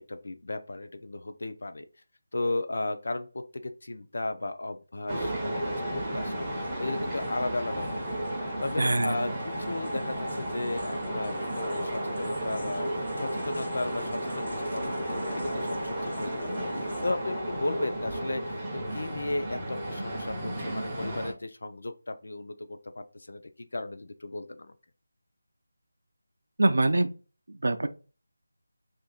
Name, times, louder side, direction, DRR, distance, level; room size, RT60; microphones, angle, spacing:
voice 1, 0.0-1.9 2.3-8.2 8.6-23.4 23.7-24.7, left 2 dB, 55° left, 8 dB, 0.4 m, -35 dB
sound 1, 5.1-21.3, right 1 dB, 10° right, 0.5 m, -33 dB
sound 2, 6.2-17.1, left 1 dB, 80° left, 0.9 m, -43 dB
voice 2, 8.8-9.4 26.6-27.1 27.5-27.9, right 2 dB, 70° right, 8 dB, 0.5 m, -24 dB
2.8 x 2.5 x 3.7 m, 0.36 s
figure-of-eight pair, 175°, 0 cm